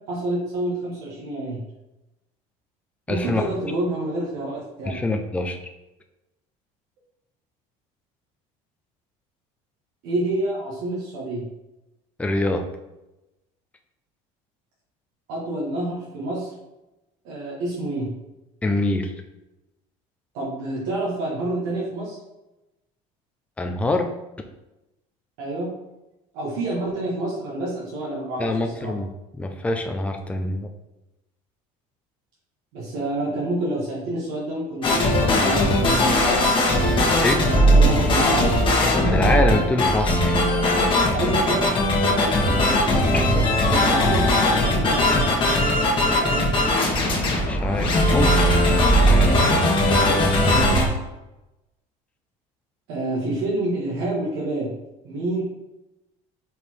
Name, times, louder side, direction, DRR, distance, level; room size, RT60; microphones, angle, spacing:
voice 1, 0.1-1.6 3.1-5.0 10.0-11.4 15.3-16.5 17.2-18.1 20.3-22.2 25.4-25.8 26.3-28.9 32.7-36.1 37.5-38.6 41.1-45.2 46.2-46.5 50.0-50.9 52.9-54.7 55.0-55.4, right 1 dB, 80° right, -5 dB, 1.8 m, -28 dB
voice 2, 3.1-3.4 4.9-5.6 12.2-12.6 18.6-19.1 23.6-24.1 28.4-29.1 29.4-30.7 37.2-37.4 39.0-40.4 43.1-43.2 47.5-48.3 48.9-49.3, left 2 dB, 10° left, 4 dB, 0.6 m, -24 dB
sound 1, 34.8-50.9, left 1 dB, 35° left, 1.6 m, -19 dB
5.3 x 4.1 x 4.7 m, 0.97 s
cardioid pair, 115°, 15 cm